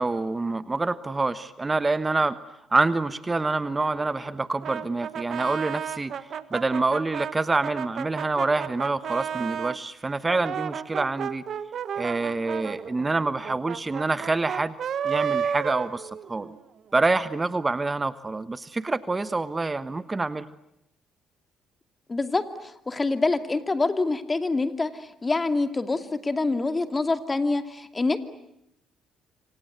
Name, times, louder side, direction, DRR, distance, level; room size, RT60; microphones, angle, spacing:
voice 1, 0.0-2.4 2.7-6.1 6.5-11.4 11.9-14.8 15.0-16.6 16.9-20.4, right 3 dB, 25° right, 14 dB, 1.2 m, -26 dB
Brass instrument, 4.6-9.8 10.3-16.6, right 8 dB, 55° right, 1.5 m, -32 dB
voice 2, 22.1-28.2, left 3 dB, 25° left, 8 dB, 2.5 m, -26 dB
27.0 x 26.5 x 8.1 m, 0.80 s
hypercardioid pair, 50°, 0 cm